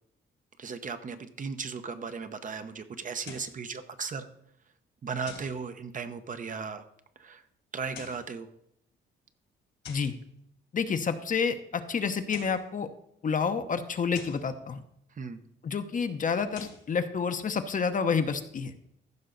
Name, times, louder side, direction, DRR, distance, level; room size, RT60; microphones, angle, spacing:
voice 1, 0.6-4.3 5.0-6.8 7.2-7.4 7.7-8.5 15.1-15.4, right 5 dB, 40° right, 9 dB, 0.9 m, -36 dB
sound 1, 3.2-3.6 5.3-5.6 7.8-8.3 9.8-10.2 12.1-12.7 14.1-14.5 16.4-16.9, left 6 dB, 65° left, 2.0 m, -46 dB
voice 2, 10.7-12.9 13.2-14.8 15.6-18.7, left 6 dB, 40° left, 9 dB, 0.9 m, -29 dB
15.0 x 5.5 x 4.0 m, 0.76 s
cardioid pair, 90°, 20 cm